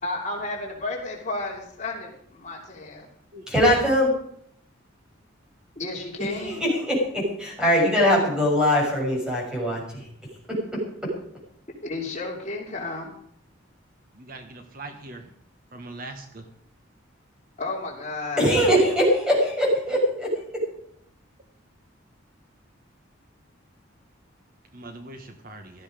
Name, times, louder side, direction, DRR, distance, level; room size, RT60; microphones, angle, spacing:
voice 1, 0.0-3.1 5.8-6.6 11.8-13.1 17.6-18.4, left 2 dB, 35° left, -1 dB, 3.2 m, -32 dB
voice 2, 3.5-4.1 6.3-10.0 10.5-10.8 18.4-20.6, equal, 5° right, -3 dB, 6.7 m, -22 dB
voice 3, 14.3-15.2 15.7-16.2 24.7-25.6, right 2 dB, 45° right, 6 dB, 1.4 m, -40 dB
16.5 x 13.5 x 5.2 m, 0.67 s
head